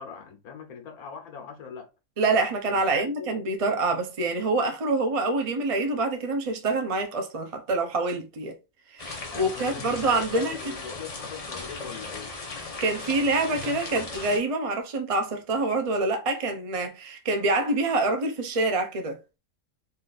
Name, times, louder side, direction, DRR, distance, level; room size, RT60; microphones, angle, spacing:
voice 1, 0.0-1.9 2.7-3.4 9.3-12.3 12.7-13.0 13.5-13.8, left 6 dB, 80° left, 1.5 m, -41 dB
voice 2, 2.2-8.6 8.9-10.6 12.8-19.2, right 2 dB, 40° right, 0.5 m, -26 dB
sound 1, 9.0-14.4, left 3 dB, 30° left, 0.7 m, -37 dB
4.0 x 2.5 x 4.0 m
omnidirectional pair, 1.6 m